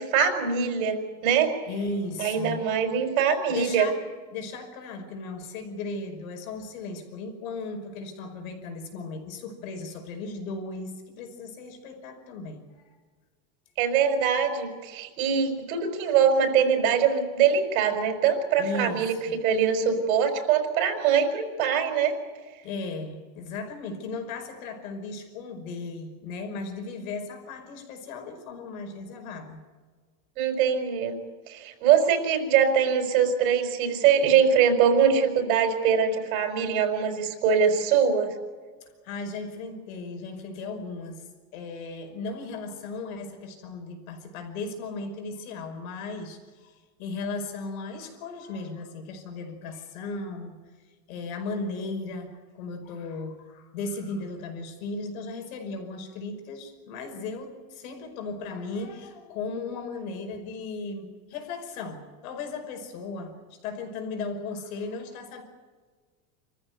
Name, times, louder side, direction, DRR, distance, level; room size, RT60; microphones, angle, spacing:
voice 1, 0.0-1.5 2.2-3.9 13.8-19.1 19.4-22.2 30.4-31.2 31.5-38.3, right 7 dB, 85° right, 7 dB, 5.0 m, -23 dB
voice 2, 1.7-2.7 3.5-4.0 4.3-12.9 18.6-19.4 22.6-29.6 39.0-41.2 41.5-50.6 51.1-65.4, left 3 dB, 90° left, 6 dB, 5.4 m, -36 dB
27.0 x 14.5 x 9.5 m, 1.5 s
cardioid pair, 165°, 41 cm